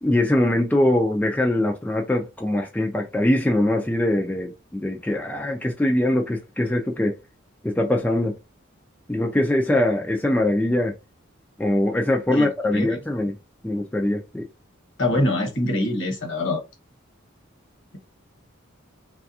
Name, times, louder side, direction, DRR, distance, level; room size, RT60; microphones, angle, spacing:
voice 1, 0.0-7.2 7.6-8.4 9.1-10.9 11.6-13.4 13.6-14.4, left 1 dB, 10° left, 0.3 m, -22 dB
voice 2, 15.0-16.6, left 1 dB, 65° left, 1.1 m, -23 dB
3.3 x 2.3 x 2.7 m
head